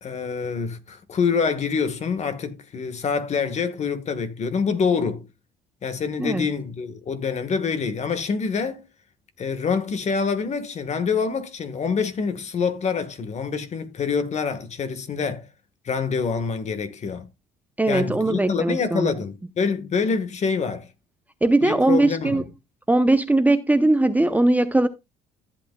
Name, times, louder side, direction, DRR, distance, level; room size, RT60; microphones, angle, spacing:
voice 1, 0.0-5.3 5.8-8.9 9.4-15.5 15.8-17.3 17.9-20.9 21.6-22.4, left 5 dB, 40° left, 1.5 m, -26 dB
voice 2, 17.8-19.1 21.4-22.4 22.9-24.9, right 2 dB, 10° right, 0.7 m, -20 dB
14.0 x 8.4 x 2.3 m
cardioid pair, 110°, 17 cm